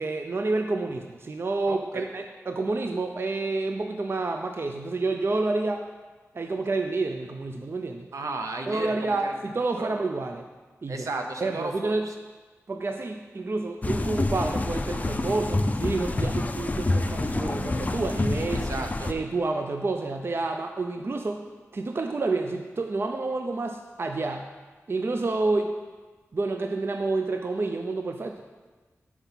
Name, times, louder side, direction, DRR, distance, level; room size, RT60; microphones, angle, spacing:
voice 1, 0.0-5.8 6.3-8.1 8.7-10.5 10.8-11.1 11.4-12.1 12.7-18.7 19.1-21.4 21.7-24.4 24.9-25.7 26.3-28.4, right 3 dB, 45° right, 5 dB, 0.4 m, -29 dB
voice 2, 1.7-2.0 8.1-9.4 9.8-9.9 10.9-12.1 18.5-19.1, right 3 dB, 80° right, 4 dB, 0.7 m, -34 dB
sound 1, 13.8-19.1, left 2 dB, 30° left, 0.4 m, -27 dB
5.7 x 4.5 x 5.4 m, 1.3 s
wide cardioid pair, 70°, 5 cm